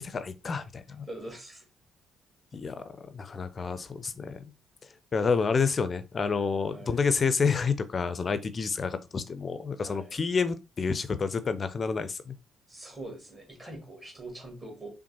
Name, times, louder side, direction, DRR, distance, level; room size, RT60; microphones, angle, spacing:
voice 1, 0.0-1.1 2.5-2.7 3.1-4.4 5.1-12.3, left 5 dB, 35° left, 0.5 m, -29 dB
voice 2, 0.9-1.6 2.8-2.9 6.6-7.0 9.8-10.2 12.7-14.9, right 1 dB, 25° right, 1.8 m, -43 dB
5.8 x 2.1 x 2.8 m
figure-of-eight pair, 45°, 0 cm